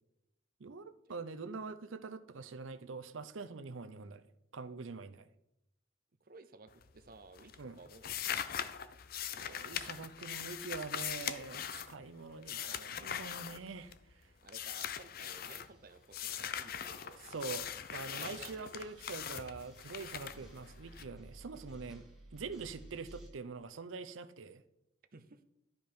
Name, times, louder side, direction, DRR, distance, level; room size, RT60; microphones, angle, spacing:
voice 1, 0.6-4.2 4.5-5.3 7.6-7.8 9.3-13.9 17.2-22.0 22.3-24.6, right 4 dB, 85° right, 11 dB, 0.6 m, -44 dB
voice 2, 6.2-8.3 14.4-17.2 17.9-18.9 25.1-25.4, right 3 dB, 45° right, 9 dB, 0.7 m, -56 dB
sound 1, 6.7-7.1 7.4-14.1 14.5-15.7 16.1-21.0, left 9 dB, 50° left, 0.5 m, -41 dB
sound 2, 15.2-23.3, right 1 dB, ahead, 1.5 m, -57 dB
12.0 x 5.3 x 4.5 m, 0.85 s
head